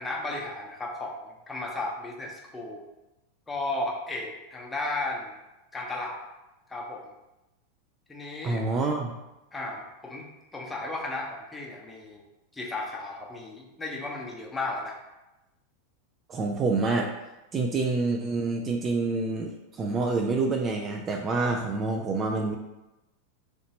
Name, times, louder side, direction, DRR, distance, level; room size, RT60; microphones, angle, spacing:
voice 1, 0.0-2.8 3.5-5.4 5.7-6.2 6.7-7.1 8.1-8.6 9.5-10.2 10.5-12.2 12.5-15.0, left 2 dB, 15° left, -1 dB, 0.8 m, -34 dB
voice 2, 8.4-9.1 16.3-17.1 17.5-22.6, right 3 dB, 30° right, 2 dB, 0.3 m, -27 dB
3.1 x 2.9 x 2.8 m, 0.98 s
hypercardioid pair, 100°, 0 cm